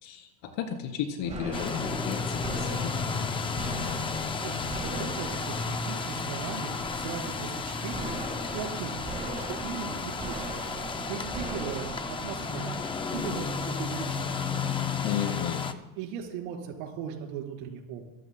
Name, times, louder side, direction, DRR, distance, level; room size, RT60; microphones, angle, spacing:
voice 1, 0.0-3.3 15.0-15.7, left 8 dB, 60° left, 3 dB, 3.3 m, -34 dB
sound 1, 1.2-14.7, right 3 dB, 15° right, 1.8 m, -40 dB
sound 2, 1.5-15.7, left 5 dB, 10° left, 0.3 m, -33 dB
voice 2, 4.3-8.2 8.5-10.7 11.0-12.8 13.1-14.9 16.0-18.0, right 7 dB, 80° right, 0 dB, 4.4 m, -38 dB
25.0 x 14.0 x 2.2 m, 1.0 s
cardioid pair, 140°, 50 cm